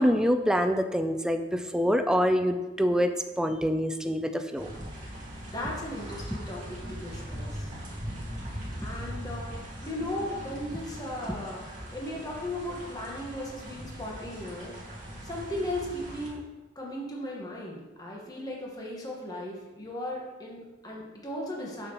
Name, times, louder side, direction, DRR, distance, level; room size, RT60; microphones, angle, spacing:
voice 1, 0.0-4.7, equal, 5° right, 7 dB, 0.4 m, -26 dB
sound 1, 4.6-16.3, equal, 45° right, 1.9 m, -40 dB
voice 2, 5.5-7.7 8.8-14.8 15.2-16.4 16.7-21.9, left 1 dB, 20° left, -3 dB, 1.3 m, -37 dB
6.9 x 6.8 x 3.0 m, 1.1 s
head